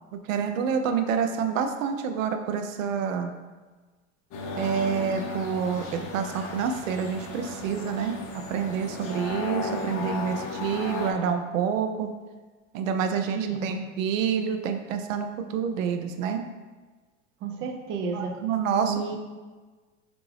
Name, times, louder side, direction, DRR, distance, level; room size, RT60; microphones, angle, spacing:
voice 1, 0.1-3.3 4.6-8.1 8.5-12.1 12.7-16.4 18.1-19.2, right 7 dB, 85° right, 7 dB, 0.5 m, -28 dB
sound 1, 4.3-11.1, left 3 dB, 35° left, 0.7 m, -35 dB
voice 2, 13.3-13.8 17.4-18.3 18.8-19.2, right 5 dB, 30° right, 3 dB, 0.4 m, -31 dB
4.6 x 2.5 x 3.2 m, 1.3 s
hypercardioid pair, 110°, 38 cm